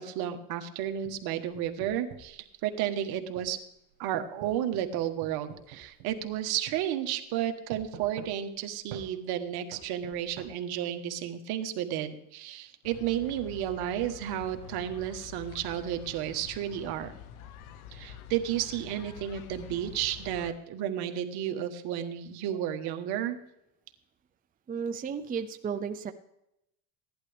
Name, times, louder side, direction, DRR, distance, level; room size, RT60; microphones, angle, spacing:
voice 1, 0.0-3.6 4.0-17.1 17.9-23.4, right 11 dB, 60° right, 7 dB, 1.4 m, -32 dB
sound 1, 0.9-2.4 3.4-3.5 4.4-6.4 6.7-6.8 7.7-8.6 8.9-9.1 9.7-10.5, right 9 dB, 90° right, 1.6 m, -47 dB
sound 2, 12.8-20.5, left 8 dB, 90° left, 1.1 m, -47 dB
voice 2, 24.7-26.1, right 6 dB, 20° right, 8 dB, 0.6 m, -33 dB
16.0 x 11.0 x 3.5 m, 0.83 s
supercardioid pair, 105°, 42 cm